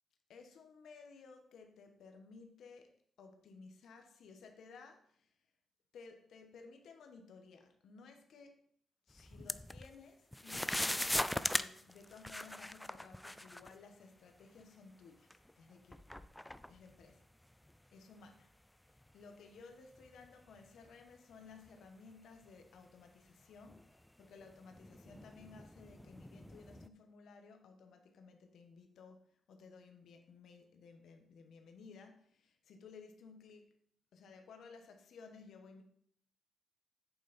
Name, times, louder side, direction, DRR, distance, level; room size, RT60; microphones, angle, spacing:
voice 1, 0.3-2.9 3.2-5.3 5.9-8.6 9.1-16.0 16.7-17.3 17.9-18.5 18.8-33.6 34.1-35.8, left 4 dB, 75° left, 5 dB, 1.3 m, -57 dB
sound 1, 9.1-10.0 10.3-13.7 14.6-14.7 15.3-17.8 18.3-18.4 19.0-19.2 19.7-21.8 22.4-22.5 23.5-26.9, left 1 dB, 5° left, 0.4 m, -41 dB
8.4 x 7.1 x 4.3 m, 0.65 s
cardioid pair, 115°, 0 cm